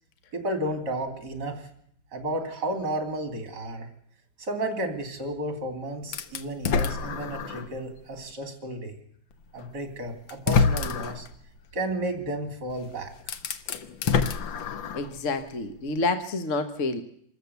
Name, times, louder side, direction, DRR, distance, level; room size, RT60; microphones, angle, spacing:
voice 1, 0.3-1.7 2.1-3.9 4.4-8.9 9.5-11.3 11.7-13.1, right 1 dB, 60° right, 6 dB, 3.8 m, -32 dB
sound 1, 6.1-7.7 8.3-8.4 9.6-9.7 10.3-11.3 12.7-12.8 13.2-15.2, left 5 dB, 80° left, 1.9 m, -26 dB
voice 2, 14.9-17.0, left 3 dB, 45° left, 9 dB, 1.4 m, -28 dB
25.5 x 14.0 x 8.2 m, 0.69 s
omnidirectional pair, 2.1 m